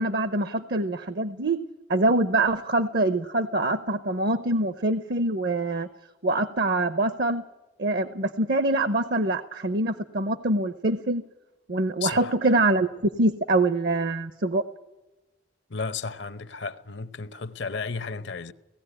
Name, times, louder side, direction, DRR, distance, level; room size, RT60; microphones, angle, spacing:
voice 1, 0.0-1.6 1.9-5.9 6.2-7.4 7.8-11.2 11.7-12.9 13.2-14.6, right 2 dB, 55° right, 0.7 m, -24 dB
voice 2, 12.0-12.3 15.7-18.5, left 5 dB, 70° left, 0.8 m, -33 dB
18.0 x 15.0 x 9.8 m
head